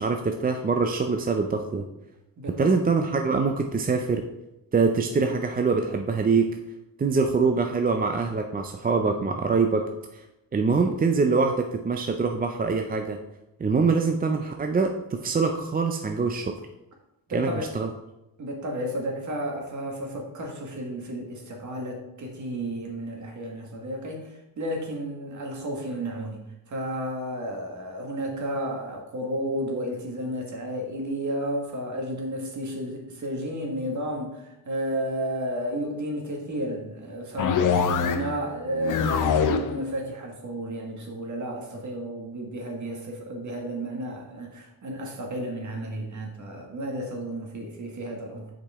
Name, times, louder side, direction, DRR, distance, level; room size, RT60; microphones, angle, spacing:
voice 1, 0.0-1.8 2.6-4.2 4.7-6.5 7.0-9.8 10.1-10.2 10.5-13.2 13.6-16.5 17.3-17.9, right 4 dB, 25° right, 4 dB, 0.5 m, -24 dB
voice 2, 2.4-2.7 17.3-17.7 18.4-26.4 26.7-48.5, right 1 dB, 50° right, 1 dB, 1.7 m, -32 dB
sound 1, 37.4-38.4 38.7-39.8, left 6 dB, 55° left, 0.6 m, -24 dB
7.0 x 5.1 x 3.6 m, 0.94 s
cardioid pair, 110°, 38 cm